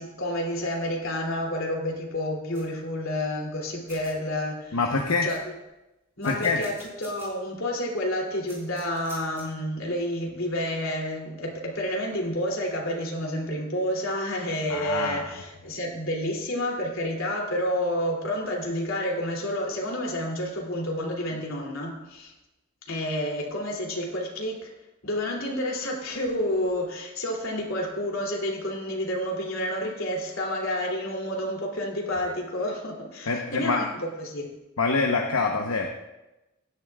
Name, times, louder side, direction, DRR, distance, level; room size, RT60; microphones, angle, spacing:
voice 1, 0.0-4.8 5.2-5.4 6.2-22.3 22.9-24.7 25.0-34.5 35.3-35.4, left 1 dB, 70° left, -1 dB, 2.9 m, -29 dB
sound 1, 2.5-2.7 3.5-3.6 3.9-4.1 4.6-4.7 5.0-5.7 6.2-7.3 7.7-7.8 8.5-9.4, right 1 dB, 10° right, 4.8 m, -47 dB
voice 2, 4.7-5.3 6.2-6.6 14.7-15.2 33.3-33.8 34.8-35.9, left 4 dB, 85° left, 1 dB, 0.9 m, -25 dB
16.5 x 11.0 x 2.4 m, 0.98 s
head